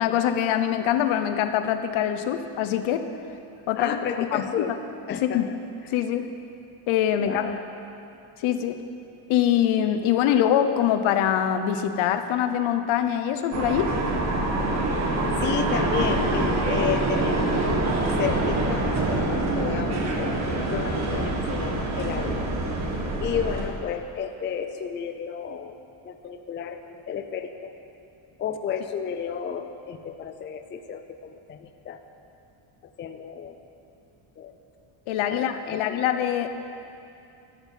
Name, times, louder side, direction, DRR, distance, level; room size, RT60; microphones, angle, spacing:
voice 1, 0.0-3.1 3.7-4.7 5.2-5.5 5.9-6.3 6.9-7.5 8.4-8.8 9.3-13.9 35.1-36.5, left 10 dB, 70° left, 9 dB, 0.9 m, -24 dB
voice 2, 3.8-4.7 5.1-5.4 7.1-7.6 15.4-17.8 18.2-20.4 20.7-22.5 23.2-25.8 26.0-27.7 28.4-32.0 33.0-33.6 34.4-34.5 35.3-36.1, left 7 dB, 25° left, 7 dB, 0.4 m, -32 dB
sound 1, 13.5-23.7, right 2 dB, 35° right, 1.6 m, -25 dB
13.5 x 7.2 x 7.5 m, 2.7 s
cardioid pair, 160°, 49 cm